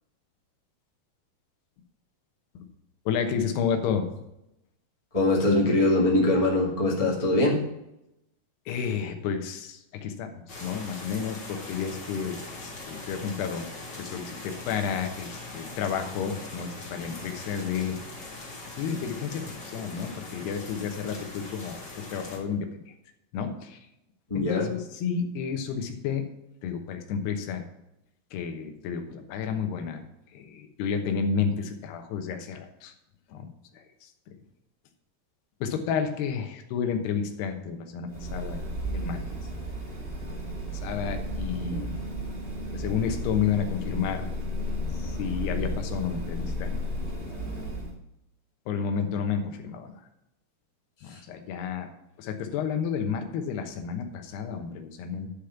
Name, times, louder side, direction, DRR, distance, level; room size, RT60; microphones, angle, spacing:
voice 1, 3.1-4.1 8.7-12.6 12.9-13.7 13.9-18.0 18.7-22.9 23.3-23.8 24.4-26.3 26.6-27.6 28.3-30.0 30.3-32.9 33.3-33.5 33.7-34.1 35.6-38.6 38.9-39.2 40.8-41.8 42.7-44.2 44.9-46.7 48.7-50.0 51.0-51.9 52.2-55.3, left 7 dB, 85° left, 6 dB, 3.1 m, -31 dB
voice 2, 5.1-7.6 24.3-24.7, left 2 dB, 15° left, -3 dB, 1.5 m, -22 dB
sound 1, 10.5-22.4, left 2 dB, 30° left, 1.4 m, -41 dB
sound 2, 38.1-47.9, equal, 55° right, 0.6 m, -33 dB
11.0 x 5.1 x 5.8 m, 0.87 s
omnidirectional pair, 4.6 m